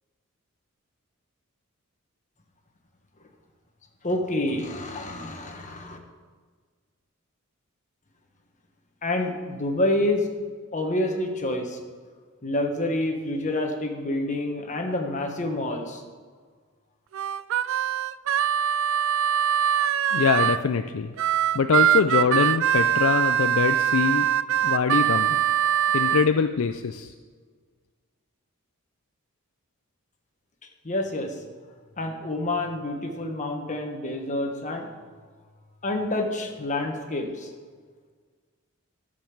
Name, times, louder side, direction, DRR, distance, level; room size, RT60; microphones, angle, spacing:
voice 1, 4.0-6.0 9.0-10.3 10.7-11.8 12.4-16.0 30.8-31.4 32.0-34.9 35.8-37.5, left 1 dB, 35° left, 3 dB, 1.3 m, -28 dB
Harmonica, 17.1-20.6 21.2-26.3, right 10 dB, 60° right, 0.3 m, -23 dB
voice 2, 20.1-21.1 21.5-24.3 24.6-25.4 25.9-27.1, left 5 dB, 65° left, 8 dB, 0.4 m, -23 dB
12.5 x 5.3 x 7.2 m, 1.5 s
head